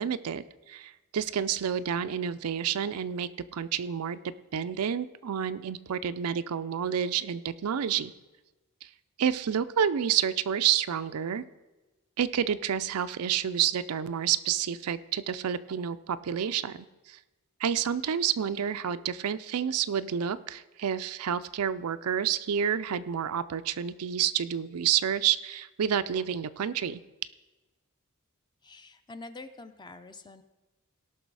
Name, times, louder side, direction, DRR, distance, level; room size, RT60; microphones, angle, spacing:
voice 1, 0.0-4.2 4.5-8.1 9.2-11.4 12.2-16.8 17.1-17.2 17.6-27.0, right 8 dB, 80° right, 13 dB, 0.4 m, -29 dB
voice 2, 28.6-30.4, left 3 dB, 20° left, 9 dB, 0.6 m, -46 dB
17.5 x 6.0 x 4.7 m, 1.1 s
head